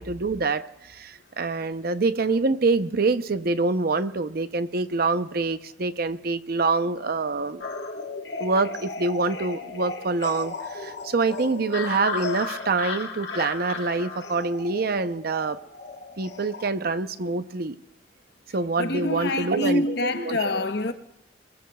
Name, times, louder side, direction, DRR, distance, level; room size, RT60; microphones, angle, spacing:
voice 1, 0.0-7.6 8.4-15.6 16.2-17.8 18.5-20.7, right 3 dB, 60° right, 0.7 m, -26 dB
sound 1, 7.6-16.7, left 4 dB, 85° left, 2.1 m, -35 dB
voice 2, 18.8-20.9, left 2 dB, 65° left, 1.0 m, -26 dB
28.0 x 20.5 x 2.3 m
head